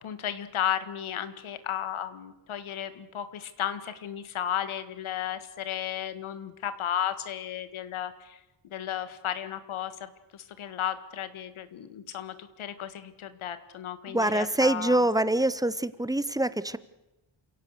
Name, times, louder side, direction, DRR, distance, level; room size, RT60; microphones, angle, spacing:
voice 1, 0.0-8.4 8.6-15.0, left 10 dB, 90° left, 11 dB, 1.8 m, -34 dB
voice 2, 14.1-16.8, right 1 dB, 10° right, 15 dB, 0.7 m, -25 dB
29.0 x 17.0 x 6.6 m, 0.99 s
wide cardioid pair, 140°, 47 cm